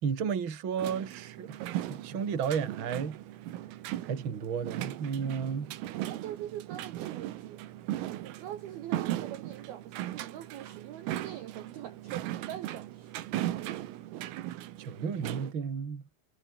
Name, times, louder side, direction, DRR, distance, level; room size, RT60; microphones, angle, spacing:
voice 1, 0.0-3.2 4.1-5.7 14.8-16.0, right 6 dB, 35° right, 2.5 m, -33 dB
sound 1, 0.8-15.5, right 14 dB, 85° right, 4.4 m, -38 dB
voice 2, 5.9-7.6 8.2-13.8, right 11 dB, 65° right, 2.7 m, -43 dB
omnidirectional pair, 5.9 m